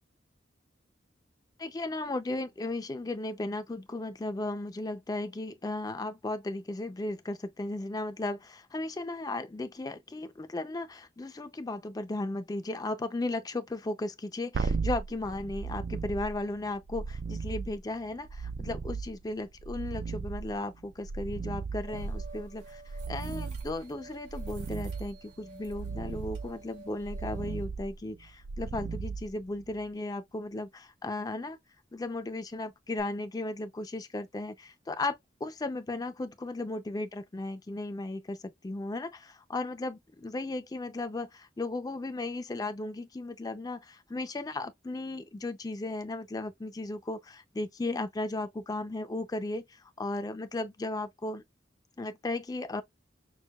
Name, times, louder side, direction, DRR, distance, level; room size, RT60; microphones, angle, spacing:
voice 1, 1.6-22.8 23.1-31.6 31.9-51.4 52.0-52.8, left 2 dB, 20° left, 0.4 m, -35 dB
sound 1, 14.5-29.8 33.0-33.1, right 4 dB, 55° right, 0.3 m, -37 dB
sound 2, 21.9-27.7, right 3 dB, 85° right, 2.3 m, -51 dB
6.2 x 2.2 x 2.2 m
head